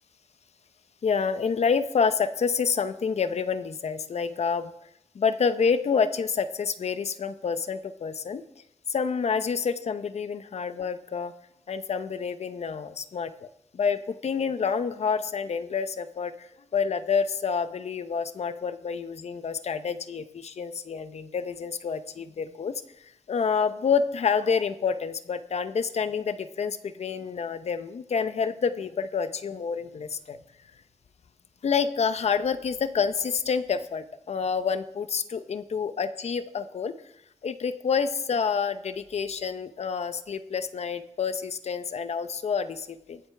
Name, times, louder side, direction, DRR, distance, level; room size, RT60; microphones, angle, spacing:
voice 1, 1.0-4.7 5.1-8.4 8.9-11.3 11.7-13.3 13.7-16.5 16.7-22.8 23.3-30.4 31.6-36.9 37.4-43.2, left 6 dB, 60° left, 11 dB, 0.7 m, -28 dB
23.0 x 7.8 x 3.4 m, 0.80 s
wide cardioid pair, 145°, 12 cm